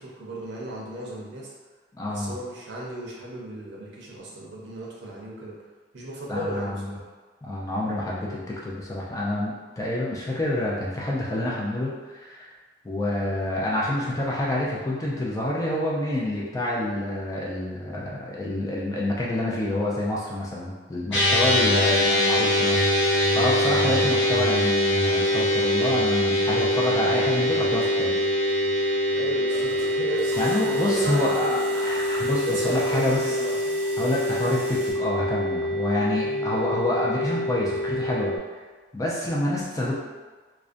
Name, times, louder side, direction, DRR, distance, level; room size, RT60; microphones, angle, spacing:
voice 1, 0.0-1.5 2.1-5.6 5.9-7.0 21.4-21.8 29.1-31.7 32.3-33.6 36.2-36.5, right 1 dB, 70° right, -4 dB, 0.6 m, -35 dB
voice 2, 1.9-2.3 6.3-6.7 7.4-12.5 12.8-28.2 28.8-29.2 30.4-33.2 34.0-38.3 38.9-39.9, left 1 dB, 20° left, -5 dB, 0.3 m, -27 dB
sound 1, 21.1-38.4, left 1 dB, 70° left, 0.5 m, -24 dB
sound 2, 29.5-34.9, equal, 15° right, 0.9 m, -41 dB
2.4 x 2.1 x 2.4 m, 1.3 s
head